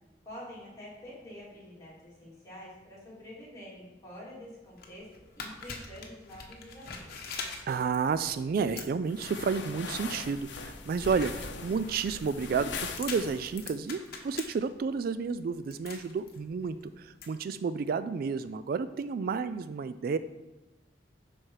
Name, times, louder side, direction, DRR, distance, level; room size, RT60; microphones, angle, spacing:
voice 1, 0.3-5.1 5.4-7.1, left 1 dB, 20° left, -8 dB, 3.3 m, -47 dB
sound 1, 4.6-17.3, left 4 dB, 55° left, 1.1 m, -45 dB
voice 2, 7.7-20.2, right 5 dB, 55° right, 13 dB, 0.3 m, -31 dB
sound 2, 9.1-13.7, left 4 dB, 80° left, 0.8 m, -41 dB
11.0 x 4.3 x 4.8 m, 1.1 s
head